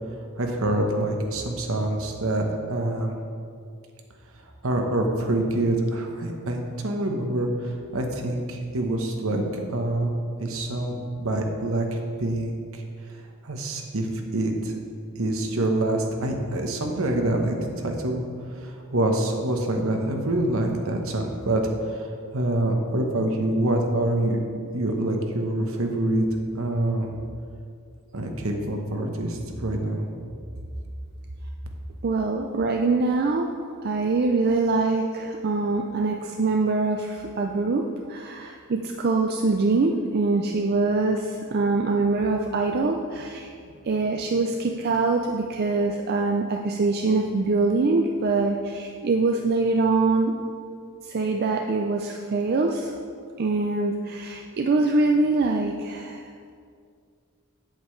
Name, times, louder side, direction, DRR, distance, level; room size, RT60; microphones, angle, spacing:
voice 1, 0.4-3.2 4.6-9.4 9.7-10.1 10.4-12.8 13.4-14.8 15.1-18.2 18.5-24.4 24.7-26.3 26.5-27.1 28.1-30.1, right 1 dB, 65° right, 2 dB, 1.0 m, -26 dB
voice 2, 32.0-33.6 33.8-37.8 38.1-43.5 43.8-50.3 51.0-52.9 53.4-56.2, right 3 dB, 45° right, 2 dB, 0.4 m, -24 dB
8.3 x 7.9 x 3.2 m, 2.3 s
head